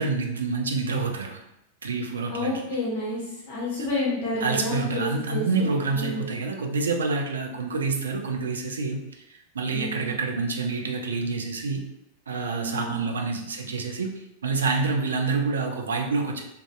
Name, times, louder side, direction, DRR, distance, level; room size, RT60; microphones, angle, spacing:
voice 1, 0.0-1.4 1.8-2.5 4.4-9.0 9.5-11.8 12.3-14.1 14.4-16.4, right 4 dB, 70° right, 2 dB, 0.3 m, -27 dB
voice 2, 2.3-6.3 9.7-10.2 12.5-13.0, left 1 dB, 45° left, -5 dB, 0.7 m, -30 dB
2.5 x 2.3 x 2.3 m, 0.84 s
figure-of-eight pair, 90°, 0 cm